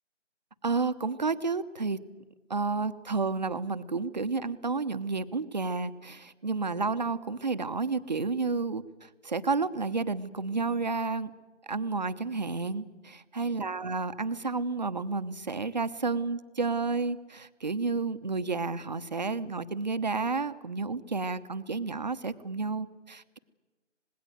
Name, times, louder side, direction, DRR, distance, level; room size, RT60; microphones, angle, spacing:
voice 1, 0.6-2.0 2.5-11.3 11.7-23.4, right 4 dB, 35° right, 11 dB, 0.9 m, -31 dB
26.0 x 20.5 x 7.9 m, 1.2 s
figure-of-eight pair, 170°, 37 cm